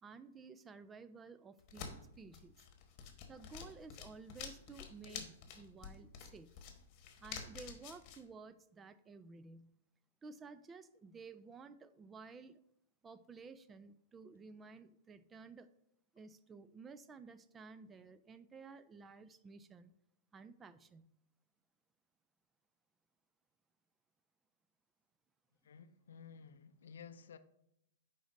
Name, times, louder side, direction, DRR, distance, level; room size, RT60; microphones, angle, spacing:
voice 1, 0.0-2.5 3.3-6.6 7.2-9.7 10.2-12.6 13.0-15.7 16.1-19.9 20.3-21.1, right 4 dB, 20° right, 14 dB, 0.3 m, -54 dB
sound 1, 1.6-8.2, left 7 dB, 40° left, 1.1 m, -50 dB
voice 2, 25.6-27.4, left 6 dB, 75° left, 12 dB, 0.4 m, -54 dB
9.9 x 4.0 x 2.6 m, 0.79 s
hypercardioid pair, 120°, 0 cm